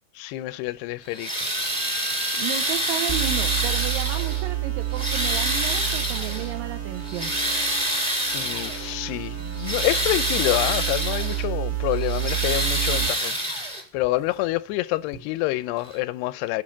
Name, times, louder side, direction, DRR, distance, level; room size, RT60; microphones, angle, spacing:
voice 1, 0.2-1.5 8.3-13.4 13.9-16.6, left 18 dB, 85° left, 2.6 m, -27 dB
sound 1, 1.1-4.5 4.9-6.5 7.0-8.9 9.4-11.4 11.9-14.0 15.1-15.2 15.8-15.9, right 1 dB, 15° right, 1.2 m, -27 dB
voice 2, 2.4-7.3, right 11 dB, 75° right, 2.2 m, -33 dB
sound 2, 3.1-13.1, right 14 dB, 35° right, 1.4 m, -29 dB
9.9 x 5.7 x 7.2 m
omnidirectional pair, 4.7 m